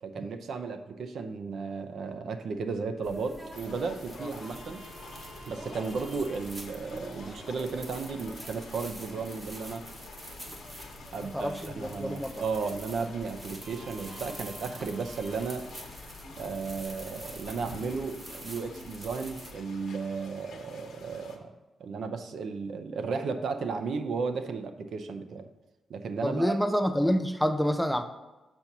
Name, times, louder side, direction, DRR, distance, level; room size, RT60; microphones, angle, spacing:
voice 1, 0.0-4.8 5.5-9.8 11.1-15.7 16.4-21.5 21.8-25.5 25.9-26.6, right 4 dB, 60° right, 8 dB, 0.6 m, -34 dB
sound 1, 3.0-19.5, right 1 dB, 20° right, 0.9 m, -45 dB
sound 2, 3.5-21.4, left 5 dB, 75° left, 1.0 m, -50 dB
voice 2, 11.2-12.4 26.2-28.0, equal, ahead, 7 dB, 0.3 m, -28 dB
6.6 x 4.3 x 5.9 m, 1.1 s
wide cardioid pair, 175°, 0 cm